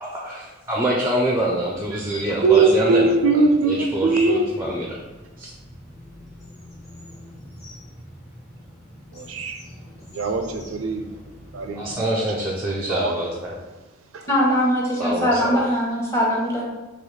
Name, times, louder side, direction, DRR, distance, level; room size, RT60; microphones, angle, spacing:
voice 1, 0.0-3.1 3.7-4.9 5.4-5.5 11.8-13.5 15.0-15.6, right 1 dB, 10° right, -2 dB, 0.4 m, -25 dB
sound 1, 1.2-11.9, equal, 35° left, 1.1 m, -44 dB
voice 2, 2.3-4.5 9.1-9.6 10.1-11.1 11.5-12.5 12.9-13.2 14.1-14.2, right 3 dB, 80° right, 6 dB, 0.4 m, -21 dB
voice 3, 14.3-16.6, equal, 15° left, -4 dB, 0.9 m, -21 dB
3.9 x 2.9 x 3.1 m, 1.1 s
head